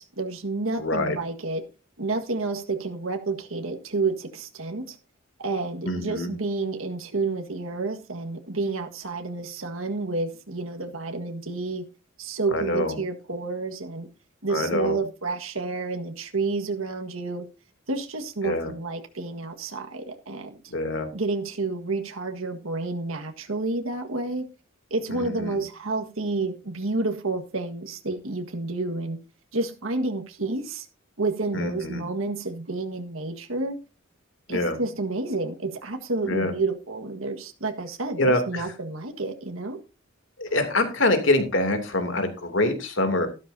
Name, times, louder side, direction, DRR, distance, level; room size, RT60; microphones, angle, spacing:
voice 1, 0.0-1.6 2.0-5.0 5.4-11.9 12.2-14.1 14.4-17.5 17.9-20.6 21.1-24.5 24.9-29.2 29.5-30.9 31.2-33.8 34.5-39.8, right 3 dB, 85° right, 4 dB, 1.7 m, -30 dB
voice 2, 0.7-1.2 5.8-6.3 12.5-13.0 14.5-15.0 18.4-18.7 20.7-21.1 25.1-25.6 31.5-32.0 34.5-34.8 36.3-36.5 38.2-38.7 40.4-43.3, left 1 dB, 65° left, 7 dB, 2.9 m, -25 dB
13.5 x 12.5 x 2.7 m, 0.30 s
head